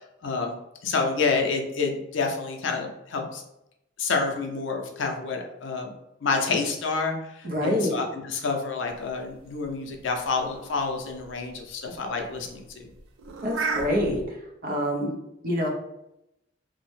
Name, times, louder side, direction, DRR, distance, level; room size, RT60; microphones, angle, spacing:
voice 1, 0.2-0.5 0.8-3.4 4.0-5.9 6.2-12.9, left 4 dB, 70° left, 3 dB, 0.5 m, -28 dB
voice 2, 7.4-8.0 13.4-14.2 14.6-15.2 15.4-15.7, equal, 50° right, 0 dB, 0.6 m, -26 dB
sound 1, 9.0-14.3, right 4 dB, 90° right, 0.4 m, -36 dB
2.7 x 2.1 x 3.1 m, 0.85 s
head